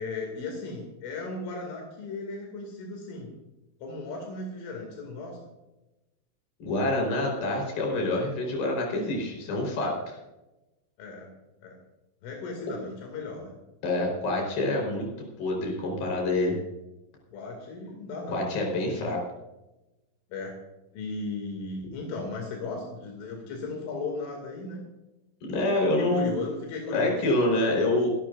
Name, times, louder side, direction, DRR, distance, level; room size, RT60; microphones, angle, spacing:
voice 1, 0.0-3.3 3.8-5.4 11.0-11.3 11.6-11.8 12.2-13.6 17.3-18.4 19.0-19.2 20.3-20.6 20.9-24.8 26.0-27.2, left 3 dB, 75° left, 0 dB, 5.1 m, -36 dB
voice 2, 6.6-10.2 13.8-16.6 18.3-19.2 25.5-26.3 26.9-28.1, left 2 dB, 50° left, 0 dB, 6.1 m, -27 dB
26.5 x 12.5 x 2.6 m, 0.99 s
omnidirectional pair, 5.7 m